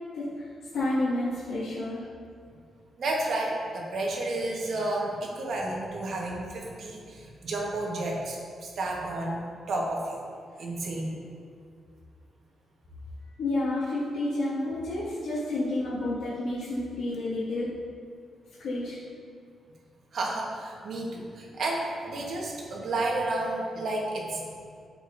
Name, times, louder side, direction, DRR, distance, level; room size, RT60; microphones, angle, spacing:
voice 1, 0.1-0.5 0.7-2.0 13.4-17.7 18.6-19.0, left 2 dB, 90° left, -11 dB, 1.8 m, -30 dB
voice 2, 3.0-9.4 9.7-10.2 10.6-11.2 20.1-24.4, right 2 dB, 60° right, -2 dB, 1.4 m, -31 dB
13.0 x 5.0 x 2.7 m, 2.2 s
wide cardioid pair, 140°, 0 cm